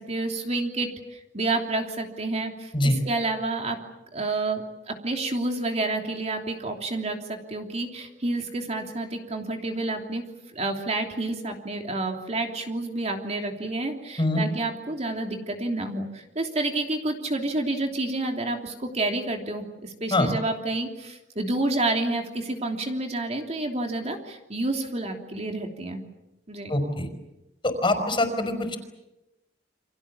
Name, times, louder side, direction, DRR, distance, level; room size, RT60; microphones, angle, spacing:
voice 1, 0.0-3.8 4.1-10.2 10.5-26.0 26.5-26.7, right 2 dB, 40° right, 3 dB, 3.1 m, -29 dB
voice 2, 26.7-27.1 27.6-28.8, left 1 dB, 30° left, 7 dB, 4.9 m, -24 dB
29.5 x 25.5 x 7.2 m, 0.96 s
head